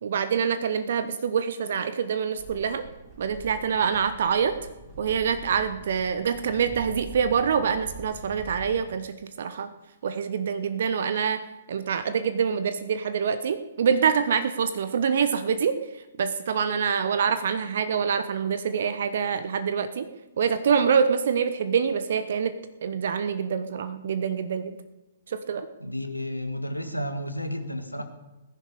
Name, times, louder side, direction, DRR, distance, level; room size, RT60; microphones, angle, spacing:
voice 1, 0.0-2.8 3.2-4.6 5.0-9.7 10.0-20.1 20.4-22.5 22.8-24.8 25.3-25.7, right 6 dB, 55° right, 12 dB, 0.8 m, -25 dB
sound 1, 2.3-8.8, right 3 dB, 20° right, 5.2 m, -44 dB
voice 2, 25.8-28.0, equal, 90° left, 7 dB, 1.8 m, -32 dB
20.5 x 10.5 x 4.9 m, 1.1 s
figure-of-eight pair, 120°, 0 cm